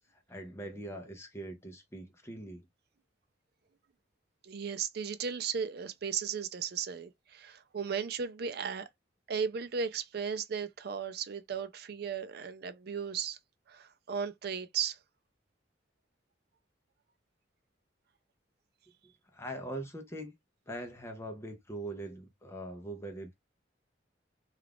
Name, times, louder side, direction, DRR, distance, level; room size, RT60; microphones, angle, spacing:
voice 1, 0.1-2.7 19.3-20.3 20.7-23.4, right 1 dB, 15° left, 0.6 m, -42 dB
voice 2, 4.4-8.9 9.3-13.4 13.7-15.0, right 6 dB, 55° right, 0.4 m, -36 dB
2.4 x 2.3 x 3.4 m
head